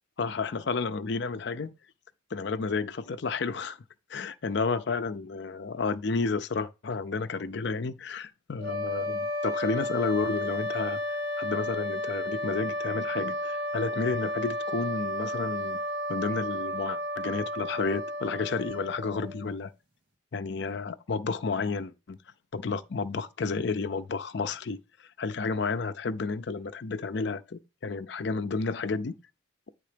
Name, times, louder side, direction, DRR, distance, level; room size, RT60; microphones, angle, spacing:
voice 1, 0.2-1.7 2.3-3.8 4.1-11.0 11.4-15.8 16.1-19.7 20.3-22.2 22.5-24.8 25.2-29.1, left 4 dB, 60° left, 0.5 m, -31 dB
sound 1, 8.6-19.5, left 1 dB, 65° right, 2.1 m, -32 dB
8.5 x 3.7 x 5.1 m
head